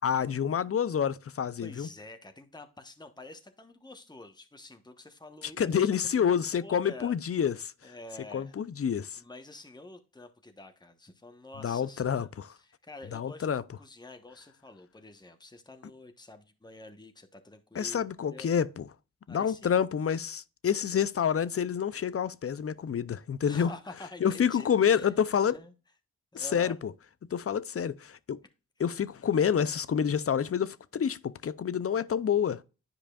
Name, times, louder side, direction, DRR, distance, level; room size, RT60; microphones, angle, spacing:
voice 1, 0.0-1.9 5.6-7.7 8.3-9.2 11.6-12.5 13.1-13.6 17.7-18.9 19.3-23.7 24.2-25.6 26.3-26.9 27.3-28.4 28.8-32.6, left 8 dB, 40° left, 0.6 m, -28 dB
voice 2, 1.6-7.2 7.8-8.6 9.2-13.5 13.8-18.5 19.3-19.9 23.4-25.1 25.5-25.7 26.3-26.8, left 2 dB, 10° left, 1.1 m, -48 dB
10.5 x 4.8 x 2.4 m
supercardioid pair, 40°, 35 cm